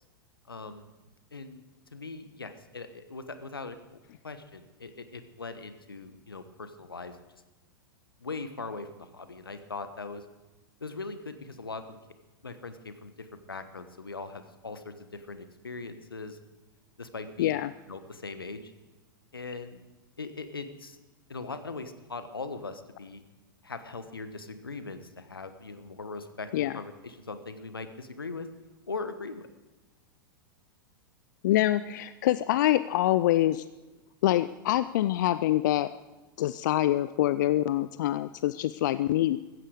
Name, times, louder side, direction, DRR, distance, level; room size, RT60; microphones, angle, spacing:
voice 1, 0.5-0.9 1.3-1.6 1.9-3.8 4.2-7.2 8.2-10.2 10.8-12.0 12.4-16.4 17.0-17.6 17.9-18.7 19.3-19.8 20.2-21.0 21.3-23.2 23.6-28.5 28.9-29.5, left 3 dB, 85° left, 10 dB, 1.2 m, -40 dB
voice 2, 17.4-17.7 26.5-26.7 31.4-33.6 34.2-35.9 36.4-39.4, left 14 dB, 55° left, 15 dB, 0.4 m, -25 dB
15.5 x 14.5 x 4.9 m, 1.1 s
figure-of-eight pair, 95°, 12 cm